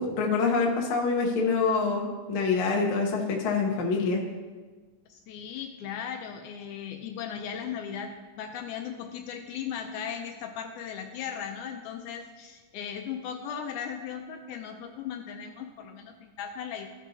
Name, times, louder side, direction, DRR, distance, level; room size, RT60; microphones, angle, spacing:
voice 1, 0.0-4.2, left 4 dB, 65° left, 0 dB, 1.3 m, -26 dB
voice 2, 5.1-16.9, left 8 dB, 80° left, 4 dB, 1.9 m, -37 dB
15.0 x 5.4 x 2.7 m, 1.4 s
omnidirectional pair, 3.8 m